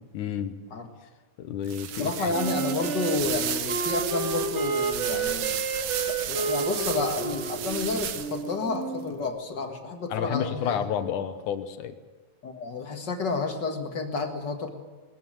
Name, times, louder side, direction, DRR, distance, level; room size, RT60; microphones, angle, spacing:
voice 1, 0.1-0.6 1.4-2.3 10.1-11.9, left 9 dB, 70° left, 9 dB, 2.3 m, -30 dB
sound 1, 1.6-8.5, right 10 dB, 65° right, 1.8 m, -33 dB
voice 2, 2.0-5.5 6.1-10.8 12.4-14.7, left 3 dB, 40° left, 4 dB, 1.8 m, -30 dB
Wind instrument woodwind instrument, 2.3-9.1, right 4 dB, 30° right, 1.4 m, -31 dB
21.0 x 14.0 x 9.0 m, 1.3 s
omnidirectional pair, 3.9 m